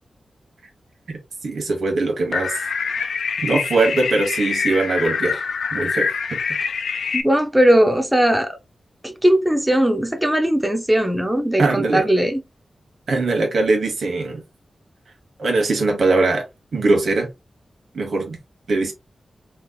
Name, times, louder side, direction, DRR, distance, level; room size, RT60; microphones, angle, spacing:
voice 1, 1.1-2.6 3.4-5.4 5.7-6.4 11.6-12.0 13.1-14.4 15.4-16.4 16.7-17.3 17.9-18.4 18.7-18.9, right 3 dB, 70° right, 1.4 m, -21 dB
sound 1, 2.3-7.2, left 5 dB, 90° left, 0.5 m, -25 dB
voice 2, 7.1-8.6 9.0-12.4, right 1 dB, 5° right, 0.5 m, -18 dB
3.8 x 3.3 x 2.3 m
wide cardioid pair, 155°, 0 cm